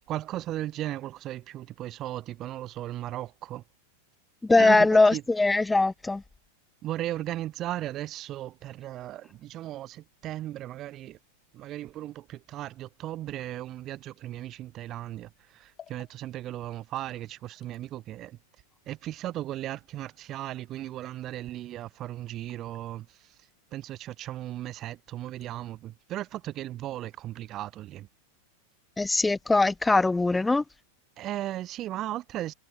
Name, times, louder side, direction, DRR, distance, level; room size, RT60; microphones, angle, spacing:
voice 1, 0.1-3.6 4.6-5.3 6.8-11.2 11.5-18.4 18.9-23.3 23.7-28.1 31.2-32.5, right 14 dB, 35° right, 0.6 m, -36 dB
voice 2, 4.4-6.2 29.0-30.6, left 3 dB, 10° left, 0.7 m, -21 dB
sound 1, 15.7-25.5, left 10 dB, 25° left, 5.6 m, -61 dB
figure-of-eight pair, 90°, 0 cm